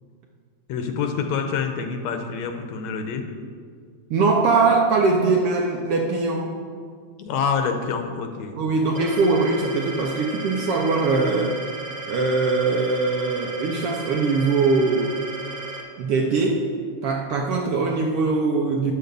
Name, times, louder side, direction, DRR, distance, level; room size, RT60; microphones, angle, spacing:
voice 1, 0.7-3.3 7.2-8.6, left 6 dB, 80° left, 5 dB, 2.0 m, -26 dB
voice 2, 4.1-6.6 8.5-11.6 12.1-15.2 16.0-16.7 17.0-18.9, right 3 dB, 70° right, 1 dB, 1.4 m, -21 dB
sound 1, 8.9-15.8, right 3 dB, 40° right, 1.3 m, -35 dB
10.0 x 6.5 x 6.7 m, 2.1 s
omnidirectional pair, 3.3 m